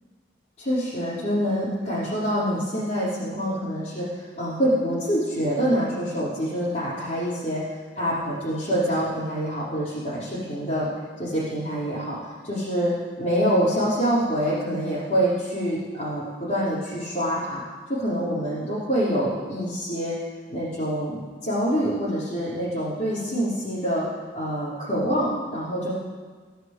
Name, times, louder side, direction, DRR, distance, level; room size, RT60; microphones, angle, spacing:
voice 1, 0.6-10.9 11.2-12.2 12.4-17.6 17.9-20.2 20.5-24.0 24.3-25.9, equal, 45° left, -11 dB, 5.0 m, -26 dB
15.5 x 7.9 x 8.0 m, 1.5 s
head